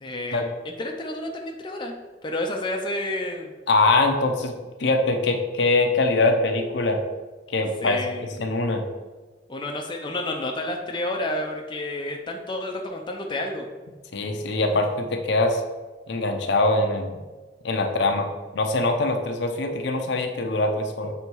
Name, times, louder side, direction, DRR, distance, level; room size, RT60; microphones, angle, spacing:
voice 1, 0.0-1.9 2.2-3.6 7.8-8.3 9.5-13.7, left 1 dB, 25° left, 1 dB, 0.5 m, -30 dB
voice 2, 3.7-4.5 4.8-7.0 7.5-8.0 8.4-8.8 14.1-15.6 16.1-17.2 17.6-21.1, left 2 dB, 65° left, 4 dB, 0.7 m, -23 dB
7.0 x 3.5 x 4.5 m, 1.3 s
head